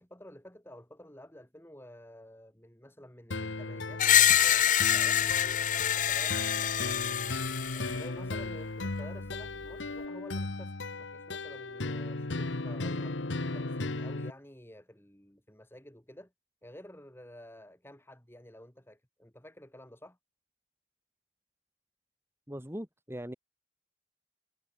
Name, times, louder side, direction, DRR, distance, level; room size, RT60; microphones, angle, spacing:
voice 1, 0.0-6.7 7.7-16.3 16.6-20.2, left 1 dB, 15° left, 5.3 m, -51 dB
sound 1, 3.3-14.3, left 2 dB, 90° left, 1.4 m, -36 dB
Screech, 4.0-8.0, left 10 dB, 45° left, 1.0 m, -26 dB
voice 2, 22.5-23.4, equal, 15° right, 2.4 m, -40 dB
head